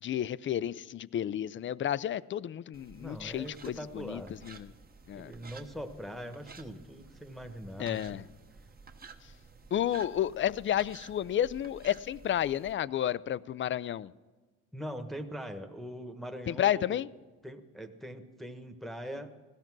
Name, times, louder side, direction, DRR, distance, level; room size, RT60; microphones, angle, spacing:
voice 1, 0.0-4.7 5.1-5.3 7.8-8.2 9.7-14.1 16.5-17.1, left 11 dB, 40° left, 0.4 m, -31 dB
sound 1, 2.7-12.7, right 4 dB, 30° right, 1.1 m, -53 dB
voice 2, 3.0-4.4 5.1-8.3 14.7-17.0 17.4-19.3, equal, ahead, 1.2 m, -42 dB
16.5 x 13.5 x 6.1 m
cardioid pair, 90°, 30 cm